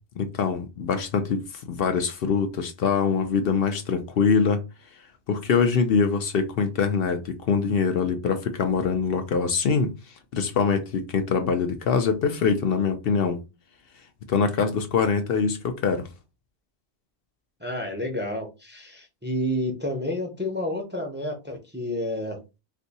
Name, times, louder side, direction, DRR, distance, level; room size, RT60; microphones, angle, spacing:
voice 1, 0.2-4.6 5.3-9.9 10.3-13.4 14.3-16.1, left 5 dB, 65° left, 0.7 m, -24 dB
voice 2, 17.6-22.4, left 1 dB, 10° right, 0.6 m, -30 dB
2.6 x 2.6 x 4.0 m
omnidirectional pair, 1.1 m